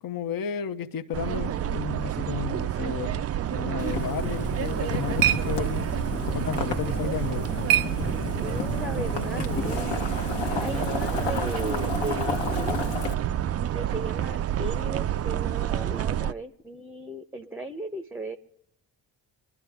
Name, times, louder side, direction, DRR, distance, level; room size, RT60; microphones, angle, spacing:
voice 1, 0.0-5.8 6.3-7.5, left 8 dB, 45° left, 0.9 m, -33 dB
sound 1, 1.1-16.3, right 11 dB, 35° right, 0.4 m, -29 dB
Boiling, 3.8-13.1, left 4 dB, 60° left, 1.3 m, -32 dB
sound 2, 4.5-8.7, right 13 dB, 70° right, 0.6 m, -30 dB
voice 2, 8.4-9.9 10.6-12.8 13.7-18.4, right 1 dB, 5° right, 0.8 m, -36 dB
23.0 x 12.0 x 3.5 m
hypercardioid pair, 40°, 48 cm